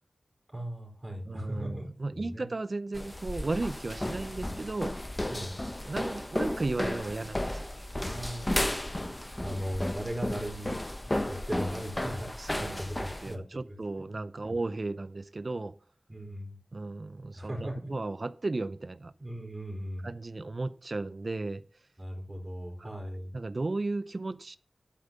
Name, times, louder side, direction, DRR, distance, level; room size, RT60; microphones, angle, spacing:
voice 1, 0.5-2.5 5.3-5.5 7.9-8.6 9.4-10.8 11.3-13.4 13.7-14.1 14.4-14.6 16.1-16.6 17.3-17.9 19.2-20.1 22.0-23.3, equal, 20° right, 4.1 m, -38 dB
voice 2, 1.3-4.9 5.9-7.8 12.4-15.7 16.7-19.1 20.0-21.6 22.8-22.9 23.3-24.6, right 2 dB, 55° right, 0.6 m, -35 dB
sound 1, 2.9-13.3, left 1 dB, 20° left, 1.2 m, -34 dB
12.0 x 5.2 x 6.8 m
wide cardioid pair, 60°, 0 cm